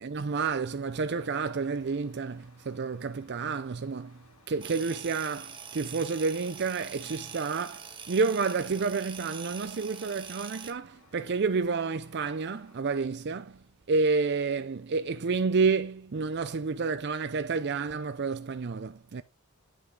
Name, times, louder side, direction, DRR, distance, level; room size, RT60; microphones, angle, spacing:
voice 1, 0.0-19.2, right 4 dB, 50° right, 0.5 m, -30 dB
Truck, 0.8-12.8, left 2 dB, 70° left, 2.7 m, -60 dB
sound 1, 4.6-10.7, right 6 dB, 20° right, 1.3 m, -44 dB
10.0 x 5.8 x 3.7 m
head